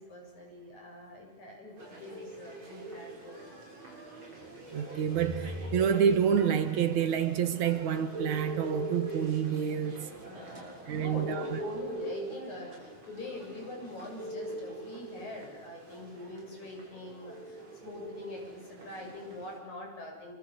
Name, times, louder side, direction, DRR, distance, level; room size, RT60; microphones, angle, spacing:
voice 1, 0.0-3.4 10.3-20.3, left 2 dB, 80° left, 9.2 m, -44 dB
sound 1, 1.8-19.6, right 2 dB, 40° right, 8.1 m, -43 dB
voice 2, 4.7-10.2 10.9-11.6, right 8 dB, 80° right, 3.1 m, -28 dB
28.0 x 25.5 x 8.3 m
omnidirectional pair, 3.3 m